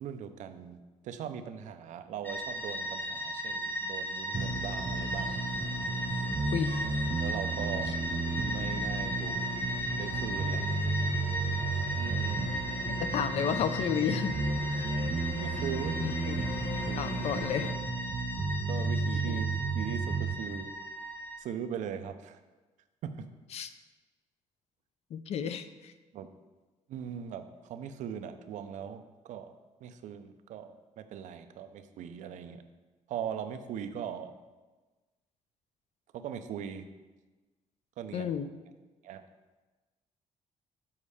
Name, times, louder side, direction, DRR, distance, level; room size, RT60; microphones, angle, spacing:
voice 1, 0.0-5.5 7.2-7.9 8.4-9.4 10.0-10.8 12.0-12.7 14.7-14.9 15.2-16.3 16.7-17.2 18.7-19.5 19.7-20.7 21.4-22.4 23.0-23.3 26.1-26.3 26.9-29.5 29.8-32.6 33.1-34.4 36.1-36.9 38.0-38.3 39.0-39.2, right 8 dB, 75° right, 9 dB, 0.5 m, -40 dB
sound 1, 2.2-21.4, equal, 15° left, 0.7 m, -37 dB
sound 2, 4.3-17.7, left 6 dB, 90° left, 0.7 m, -43 dB
sound 3, 4.3-20.3, right 3 dB, 25° right, 0.4 m, -33 dB
voice 2, 13.0-14.4 16.0-16.4 17.0-17.7 19.3-19.4 23.5-23.7 25.1-25.9 38.1-38.5, left 8 dB, 55° left, 11 dB, 0.5 m, -32 dB
7.2 x 5.3 x 4.9 m, 1.2 s
cardioid pair, 145°, 13 cm